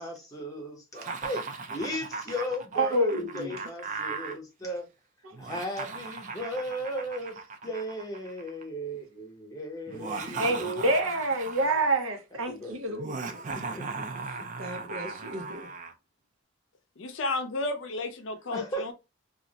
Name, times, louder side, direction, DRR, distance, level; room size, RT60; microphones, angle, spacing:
voice 1, 0.0-1.4 1.7-4.9 5.4-7.4 7.6-10.7 12.3-13.0 13.5-15.1 18.5-18.9, equal, 20° left, 0.8 m, -37 dB
Laughter, 0.9-4.4 5.3-8.6 9.9-11.9 13.0-15.9, right 4 dB, 40° right, 0.4 m, -38 dB
voice 2, 2.7-3.6 5.2-5.4 10.1-13.9 14.6-15.7, right 2 dB, 85° right, 0.7 m, -29 dB
voice 3, 17.0-18.9, left 2 dB, 65° left, 0.5 m, -32 dB
2.4 x 2.1 x 3.8 m
head